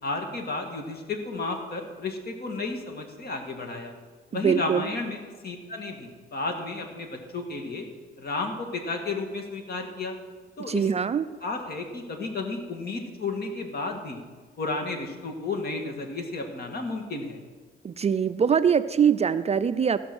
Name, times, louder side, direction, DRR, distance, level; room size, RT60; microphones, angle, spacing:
voice 1, 0.0-3.9 4.3-7.9 8.2-10.2 10.6-10.9 11.4-14.2 14.6-17.4, left 3 dB, 50° left, 3 dB, 2.0 m, -32 dB
voice 2, 4.3-4.8 10.7-11.3 17.8-20.0, right 7 dB, 35° right, 12 dB, 0.4 m, -23 dB
15.0 x 6.2 x 6.1 m, 1.4 s
cardioid pair, 90°, 20 cm